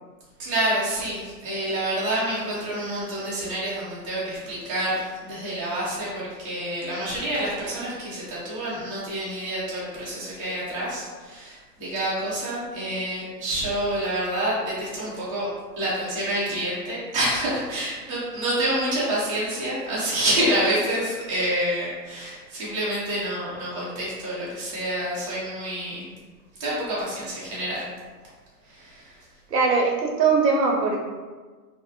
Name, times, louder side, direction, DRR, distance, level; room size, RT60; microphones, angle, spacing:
voice 1, 0.4-15.5 15.8-26.1 26.6-27.8 28.7-29.1, right 1 dB, 20° right, -9 dB, 0.5 m, -28 dB
voice 2, 29.5-31.0, right 4 dB, 75° right, 0 dB, 0.7 m, -21 dB
2.5 x 2.0 x 2.7 m, 1.4 s
figure-of-eight pair, 130°, 50 cm